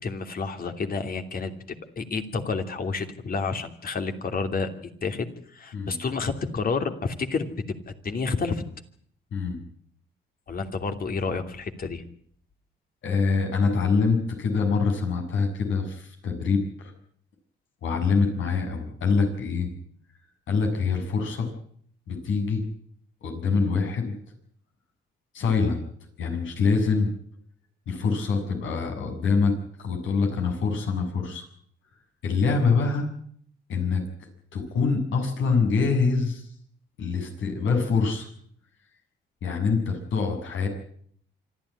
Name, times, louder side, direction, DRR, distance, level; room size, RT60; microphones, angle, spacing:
voice 1, 0.0-1.5 2.0-4.7 5.0-8.6 10.5-12.0, left 4 dB, 45° left, 6 dB, 3.0 m, -29 dB
voice 2, 13.0-16.9 17.8-19.7 20.5-21.5 22.1-22.6 23.2-24.1 25.3-25.8 26.2-27.1 27.9-29.5 29.8-31.5 32.2-33.1 33.7-34.0 34.5-36.5 37.0-38.3 39.4-40.7, left 4 dB, 75° left, 4 dB, 7.2 m, -25 dB
26.0 x 13.0 x 9.9 m, 0.62 s
cardioid pair, 90°, 20 cm